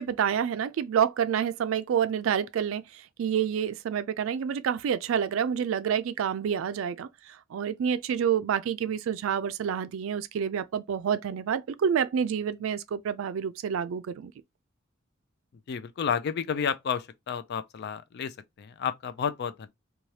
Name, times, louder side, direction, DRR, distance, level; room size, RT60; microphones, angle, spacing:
voice 1, 0.0-2.8 3.2-7.1 7.5-14.3, right 8 dB, 70° right, 0.3 m, -28 dB
voice 2, 15.7-19.7, left 7 dB, 55° left, 0.4 m, -31 dB
2.8 x 2.3 x 3.1 m
head